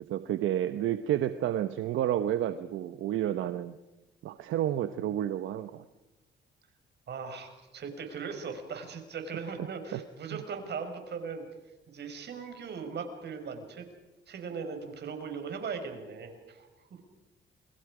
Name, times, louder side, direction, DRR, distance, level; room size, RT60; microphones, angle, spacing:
voice 1, 0.1-3.8 4.2-5.8 9.9-10.0 10.3-10.4, right 11 dB, 85° right, 10 dB, 1.0 m, -30 dB
voice 2, 7.1-11.4 11.9-13.9 14.3-17.1, right 5 dB, 60° right, 6 dB, 5.5 m, -39 dB
29.5 x 23.0 x 5.0 m, 1.1 s
cardioid pair, 90°, 20 cm